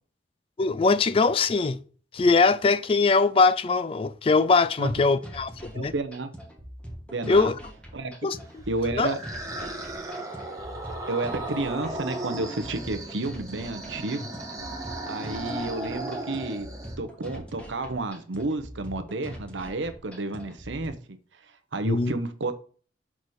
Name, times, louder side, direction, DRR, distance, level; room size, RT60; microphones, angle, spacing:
voice 1, 0.6-1.8 2.1-5.9 7.3-7.5 8.2-8.4 8.9-9.1 21.8-22.1, left 4 dB, 30° left, 0.3 m, -21 dB
sound 1, 4.9-20.9, equal, 5° left, 1.5 m, -43 dB
voice 2, 5.7-6.3 7.1-7.5 7.9-8.1 8.7-9.2 11.1-14.3 15.0-16.7 17.0-21.2 21.7-22.6, right 2 dB, 90° right, 0.9 m, -31 dB
sound 2, 8.5-17.0, right 2 dB, 20° right, 1.5 m, -36 dB
6.1 x 4.2 x 4.8 m
head